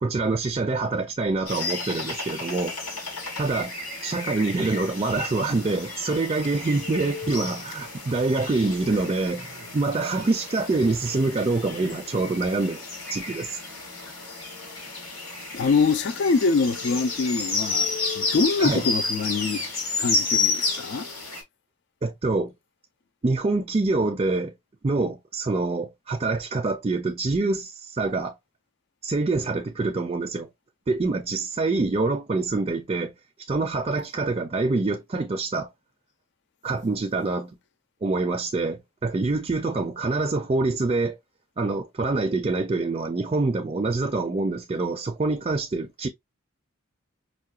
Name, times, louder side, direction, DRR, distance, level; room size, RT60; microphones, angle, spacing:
voice 1, 0.0-2.7 3.4-3.7 4.0-12.8 13.1-13.6 18.6-18.9 22.0-22.5 23.2-24.5 24.8-28.3 29.0-30.5 30.9-33.2 33.5-35.7 36.6-37.6 38.0-41.2 41.6-46.1, right 3 dB, 25° right, 0.4 m, -25 dB
sound 1, 1.5-21.4, left 4 dB, 85° left, 1.9 m, -31 dB
voice 2, 15.5-19.6 20.0-21.1, left 4 dB, 55° left, 0.4 m, -24 dB
5.5 x 2.2 x 2.3 m
head